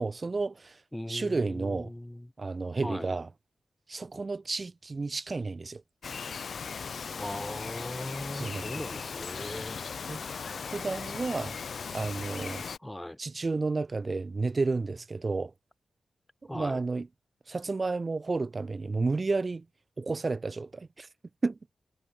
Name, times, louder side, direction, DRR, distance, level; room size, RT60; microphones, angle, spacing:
voice 1, 0.0-0.8 1.1-1.9 2.4-3.3 3.9-5.8 8.3-8.8 10.1-10.2 10.7-11.5 11.9-12.6 13.2-15.5 16.5-17.1 17.5-19.6 20.0-21.1 21.4-21.7, right 3 dB, 40° right, 0.7 m, -31 dB
voice 2, 0.9-2.3 2.8-3.1 7.2-9.8 12.8-13.2 16.5-16.8, left 1 dB, 10° left, 0.5 m, -39 dB
Bird vocalization bird call bird song, 6.0-12.8, left 6 dB, 65° left, 0.7 m, -38 dB
cardioid pair, 70°, 0 cm